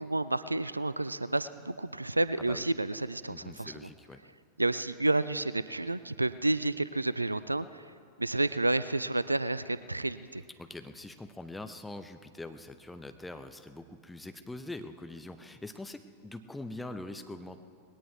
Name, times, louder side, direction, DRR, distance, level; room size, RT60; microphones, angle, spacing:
voice 1, 0.0-3.7 4.6-7.8 8.2-10.4, right 2 dB, 85° right, 16 dB, 0.4 m, -30 dB
voice 2, 3.3-4.2 10.6-17.6, left 2 dB, 5° left, 7 dB, 0.9 m, -43 dB
20.0 x 17.5 x 3.4 m, 2.3 s
figure-of-eight pair, 90°, 0 cm